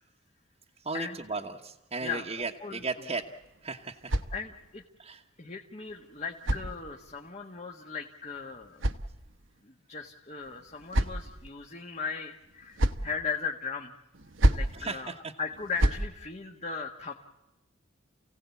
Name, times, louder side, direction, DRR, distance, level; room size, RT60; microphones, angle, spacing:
voice 1, 0.8-3.2 3.6-4.1 5.0-5.2 14.7-15.3, right 3 dB, 30° right, 0 dB, 1.2 m, -36 dB
sound 1, 3.2-4.8 5.8-7.3 8.3-9.6 10.4-11.5 12.4-13.1 14.1-14.8 15.5-16.1, right 1 dB, 70° right, 1.3 m, -31 dB
voice 2, 4.3-4.8 5.4-8.9 9.6-13.9 14.5-15.1 15.4-17.1, left 5 dB, 35° left, 2 dB, 1.6 m, -37 dB
29.0 x 17.0 x 8.4 m, 1.0 s
head